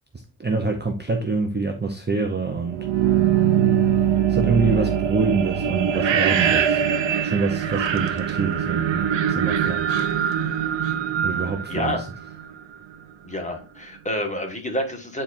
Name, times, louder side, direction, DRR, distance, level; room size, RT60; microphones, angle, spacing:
voice 1, 0.4-2.9 4.3-6.9 7.2-10.0 11.2-12.1, right 3 dB, 20° right, 3 dB, 0.7 m, -25 dB
sound 1, 2.7-12.5, right 9 dB, 65° right, 0.8 m, -22 dB
voice 2, 11.7-12.0 13.2-15.2, left 1 dB, 15° left, 3 dB, 1.5 m, -28 dB
9.3 x 4.3 x 2.5 m, 0.35 s
wide cardioid pair, 180°, 49 cm